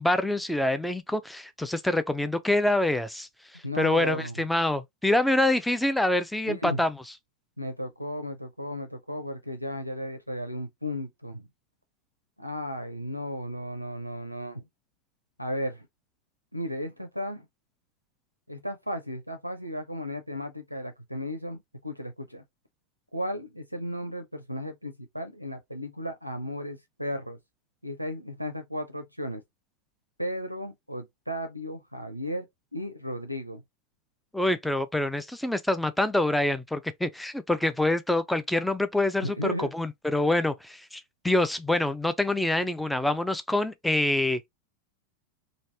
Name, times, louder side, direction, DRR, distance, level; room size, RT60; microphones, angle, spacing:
voice 1, 0.0-3.3 3.8-6.9 34.3-44.4, left 1 dB, 5° left, 0.4 m, -26 dB
voice 2, 3.6-4.4 6.5-6.9 7.6-11.5 12.4-14.6 15.4-15.9 16.5-17.5 18.5-22.4 23.1-27.4 27.8-29.4 30.2-32.5 32.7-33.6 39.2-39.7, equal, 90° right, 0.5 m, -35 dB
3.2 x 2.6 x 2.8 m
figure-of-eight pair, 90°, 0 cm